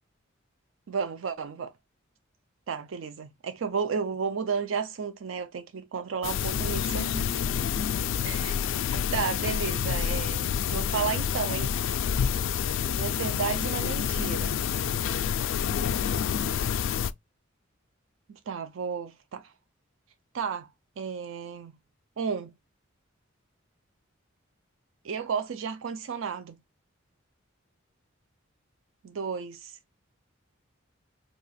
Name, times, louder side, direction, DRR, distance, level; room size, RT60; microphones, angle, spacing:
voice 1, 0.9-1.7 2.7-7.3 8.2-8.6 9.1-11.7 12.9-14.5 18.3-19.5 20.3-20.7 21.0-21.7 22.2-22.5 25.0-26.6 29.0-29.8, right 6 dB, 70° right, 0.4 m, -32 dB
sound 1, 6.2-17.1, left 8 dB, 65° left, 0.3 m, -28 dB
2.8 x 2.3 x 4.1 m
head